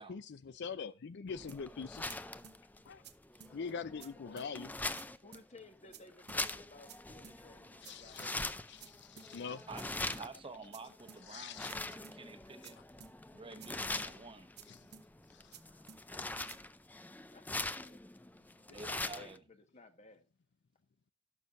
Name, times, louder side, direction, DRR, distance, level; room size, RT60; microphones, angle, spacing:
voice 1, 0.0-2.1 2.8-3.0 3.5-4.7 7.8-9.7 11.3-11.7 14.7-14.9 15.3-15.6, left 5 dB, 60° left, 0.5 m, -44 dB
sound 1, 1.3-19.4, left 2 dB, 10° left, 0.5 m, -43 dB
sound 2, 1.5-1.6 2.1-2.2 2.4-2.6 3.0-3.1 3.4-3.5 4.0-4.1 4.4-4.5 5.0-5.1 5.3-5.5 5.9-6.0 6.3-6.4 6.9-7.0 7.2-7.4 7.8-7.9 8.2-8.3 8.8-8.9 9.2-9.3 9.8-9.9 10.1-10.3 10.7-10.8 11.1-11.2 11.7-11.8 12.0-12.2 12.6-12.7 13.0-13.1 13.6-13.7 14.0-14.1 14.6-14.7 14.9-15.1 15.5-15.6 15.9-16.0 16.5-16.6, right 7 dB, 55° right, 1.0 m, -54 dB
voice 2, 5.2-8.6 17.3-17.9 18.7-20.3, left 3 dB, 35° left, 1.5 m, -57 dB
voice 3, 9.7-12.8 13.3-14.5 18.7-19.4, right 3 dB, 25° right, 1.2 m, -50 dB
17.0 x 6.5 x 2.6 m
head